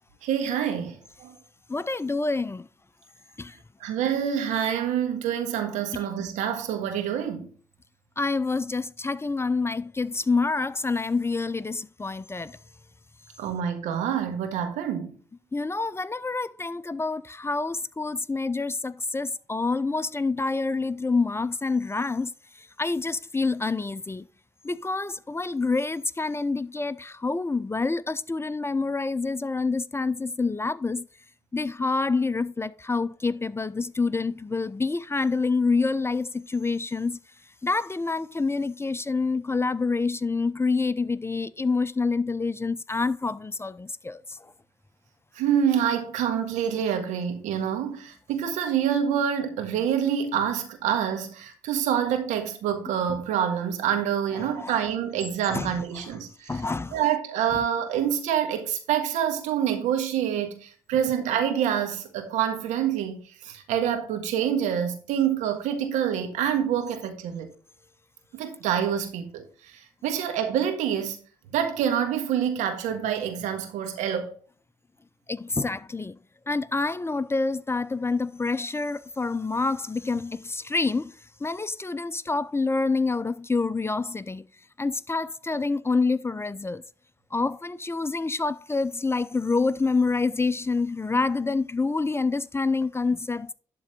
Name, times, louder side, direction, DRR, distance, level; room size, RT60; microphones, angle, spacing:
voice 1, 0.2-1.3 3.8-7.5 13.4-15.2 45.3-56.6 56.9-67.5 68.4-69.4 69.7-71.2 71.5-74.3, right 9 dB, 75° right, 1.5 m, -27 dB
voice 2, 1.7-2.7 3.4-3.6 5.9-6.1 8.2-12.6 15.5-24.2 24.6-31.1 31.5-37.2 37.6-44.5 54.3-54.8 55.5-55.8 56.5-57.0 75.3-76.2 76.5-81.1 81.4-84.5 84.8-86.8 87.3-93.5, left 3 dB, 20° left, 0.6 m, -27 dB
11.5 x 3.9 x 5.0 m
hypercardioid pair, 45°, 13 cm